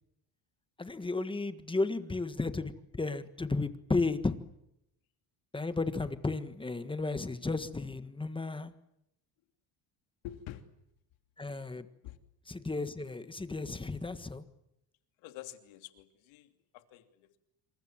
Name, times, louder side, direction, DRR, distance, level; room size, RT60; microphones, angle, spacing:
voice 1, 0.8-4.3 5.5-8.7 11.4-11.9 12.5-14.4, left 3 dB, 10° left, 11 dB, 1.5 m, -33 dB
voice 2, 10.2-10.6 12.0-12.2 15.2-17.4, left 13 dB, 90° left, 8 dB, 3.1 m, -47 dB
27.5 x 26.5 x 7.6 m, 0.83 s
cardioid pair, 150°, 45 cm